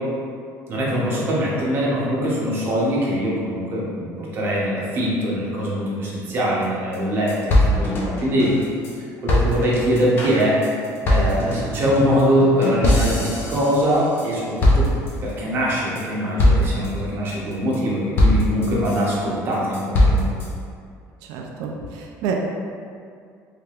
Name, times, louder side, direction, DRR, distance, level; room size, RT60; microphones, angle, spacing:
voice 1, 0.7-8.5 9.0-10.6 11.1-14.9 15.2-20.4, equal, 35° right, -5 dB, 0.7 m, -22 dB
sound 1, 6.6-6.7 6.9-7.0 7.3-8.9 9.3-14.3 14.6-15.3 15.7-16.0 16.4-16.9 17.3-17.8 18.2-19.1 19.5-20.5, left 1 dB, 35° left, 0.5 m, -21 dB
voice 2, 21.3-22.3, right 7 dB, 85° right, 1 dB, 0.3 m, -29 dB
3.3 x 3.2 x 2.4 m, 2.2 s
cardioid pair, 170°, 7 cm